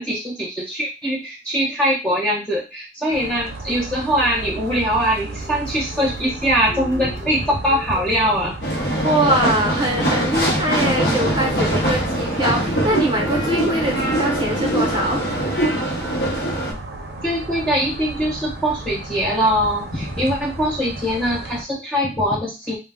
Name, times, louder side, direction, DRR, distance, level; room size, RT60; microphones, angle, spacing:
voice 1, 0.0-8.5 17.2-22.8, equal, 5° left, -4 dB, 0.5 m, -22 dB
sound 1, 3.1-21.6, right 2 dB, 80° right, 0.5 m, -34 dB
sound 2, 4.2-12.7, left 3 dB, 35° left, 0.9 m, -40 dB
sound 3, 8.6-16.7, right 1 dB, 65° left, 0.7 m, -22 dB
voice 2, 9.0-15.2, right 1 dB, 25° right, 0 dB, 0.7 m, -22 dB
2.2 x 2.0 x 3.5 m, 0.28 s
head